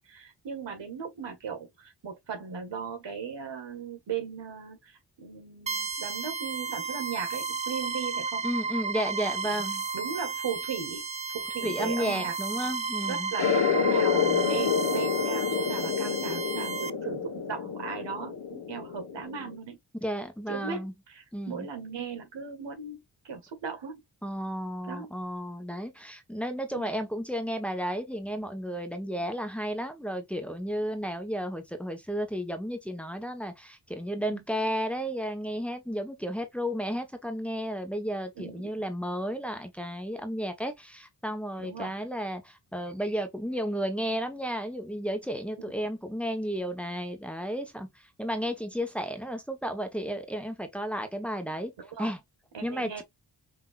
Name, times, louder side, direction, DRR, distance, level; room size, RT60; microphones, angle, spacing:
voice 1, 0.0-8.5 9.4-9.6 9.9-11.0 11.3-12.3 13.0-19.8 20.5-23.9 24.9-25.1 26.7-26.9 34.2-34.4 38.4-38.9 41.6-41.9 45.6-45.7 51.8-52.1 52.5-53.0, right 6 dB, 85° right, 1.9 m, -38 dB
sound 1, 5.7-16.9, right 5 dB, 20° right, 0.3 m, -33 dB
voice 2, 8.4-9.8 11.6-13.3 20.0-20.9 21.3-21.7 24.2-47.9 48.2-51.7 52.0-52.2 52.6-53.0, equal, 5° left, 1.1 m, -33 dB
sound 2, 13.4-19.5, left 7 dB, 65° left, 1.2 m, -28 dB
6.0 x 2.9 x 2.5 m
cardioid pair, 80°, 42 cm